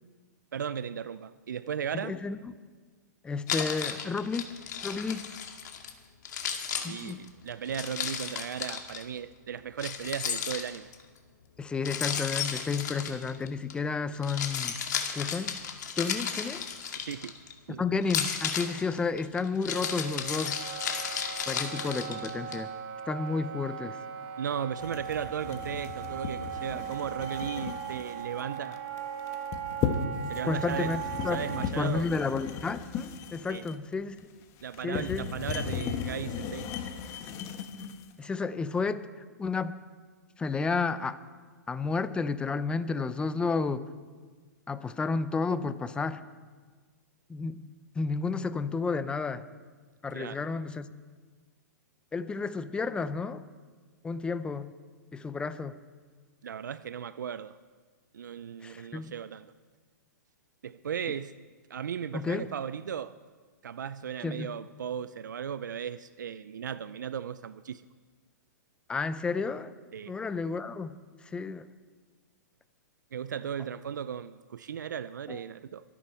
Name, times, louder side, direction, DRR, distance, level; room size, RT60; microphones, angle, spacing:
voice 1, 0.5-2.2 6.9-10.9 16.9-17.4 17.7-17.8 24.4-28.8 30.3-30.9 31.3-32.1 33.5-33.6 34.6-36.7 50.1-50.4 56.4-57.6 58.1-59.5 60.6-61.3 61.7-63.1 63.6-67.8 69.9-70.1 73.1-75.8, right 8 dB, 80° right, 15 dB, 0.5 m, -36 dB
voice 2, 1.9-2.5 3.2-4.5 4.8-5.3 6.8-7.2 11.6-14.7 15.1-15.5 16.0-16.6 17.8-20.6 21.5-22.7 23.1-24.0 30.4-31.4 31.8-34.2 34.8-35.3 38.2-39.1 39.4-39.7 40.4-41.2 41.7-43.9 44.7-46.2 47.3-47.6 47.9-49.4 50.0-50.9 52.1-53.4 54.0-54.7 55.1-55.8 58.6-59.1 62.1-62.5 64.2-64.5 68.9-69.7 70.1-71.0 71.2-71.7 75.3-75.4, left 4 dB, 10° left, 13 dB, 0.6 m, -31 dB
Keys jangling, 3.5-5.9 6.3-9.0 9.8-11.0 11.9-13.7 14.1-17.5 18.0-22.6, left 7 dB, 70° left, 2.1 m, -34 dB
Wind instrument woodwind instrument, 19.7-31.7, right 9 dB, 40° right, 1.4 m, -39 dB
sound 1, 24.8-38.1, left 6 dB, 30° left, 1.4 m, -36 dB
23.5 x 10.0 x 4.4 m, 1.5 s
hypercardioid pair, 135°, 10 cm